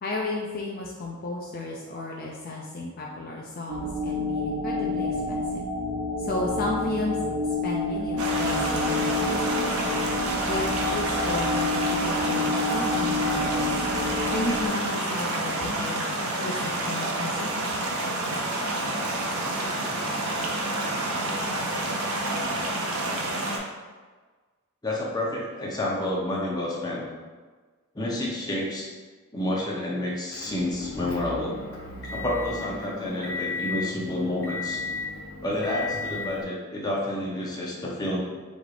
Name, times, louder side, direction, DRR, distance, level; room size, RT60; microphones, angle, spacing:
voice 1, 0.0-5.6 6.2-7.1 7.6-9.6 10.4-13.7 14.3-16.1 16.4-17.5, left 2 dB, 40° left, -1 dB, 0.4 m, -33 dB
sound 1, 3.7-14.7, left 2 dB, 35° right, 0.4 m, -28 dB
sound 2, 8.2-23.6, right 1 dB, 75° right, 0.7 m, -28 dB
voice 2, 24.8-27.0 27.9-28.9 29.3-31.7 32.1-34.8 35.4-38.2, left 1 dB, 20° left, -4 dB, 0.7 m, -29 dB
Motor vehicle (road) / Engine, 30.3-36.4, left 3 dB, 75° left, 1.4 m, -35 dB
5.1 x 3.2 x 2.5 m, 1.4 s
head